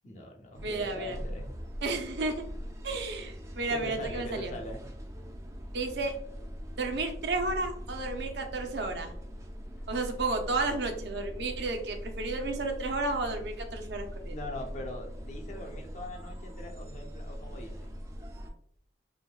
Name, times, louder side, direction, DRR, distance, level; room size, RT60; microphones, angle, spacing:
voice 1, 0.0-1.5 3.7-4.8 14.3-17.9, left 1 dB, 45° left, 1 dB, 0.6 m, -42 dB
sound 1, 0.5-18.5, equal, 15° right, 0.3 m, -41 dB
voice 2, 0.6-1.2 1.8-2.4 2.8-4.5 5.7-6.2 6.7-9.2 9.9-14.3, right 3 dB, 80° right, 5 dB, 0.5 m, -32 dB
3.4 x 2.6 x 2.2 m, 0.66 s
head